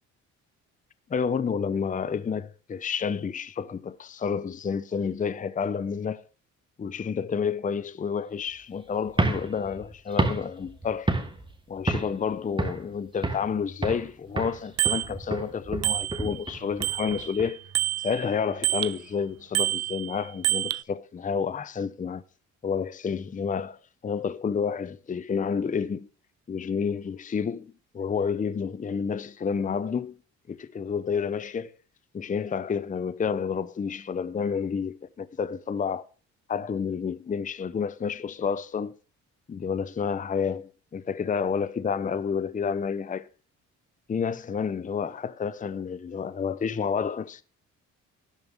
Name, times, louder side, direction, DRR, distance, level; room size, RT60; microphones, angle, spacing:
voice 1, 1.1-6.3 6.8-11.1 11.7-17.6 18.0-22.2 22.6-26.1 26.5-30.1 30.5-31.7 32.1-36.1 36.5-38.9 39.5-43.3 44.1-47.4, left 6 dB, 25° left, 0.6 m, -30 dB
sound 1, 9.1-11.5 11.9-12.2 12.6-13.5 13.8-14.1 14.4-17.5, right 2 dB, 15° right, 2.2 m, -30 dB
Bicycle bell, 14.8-15.1 15.8-16.5 16.8-19.0 19.5-20.8, right 14 dB, 60° right, 0.6 m, -28 dB
13.0 x 10.5 x 3.5 m
cardioid pair, 90°, 30 cm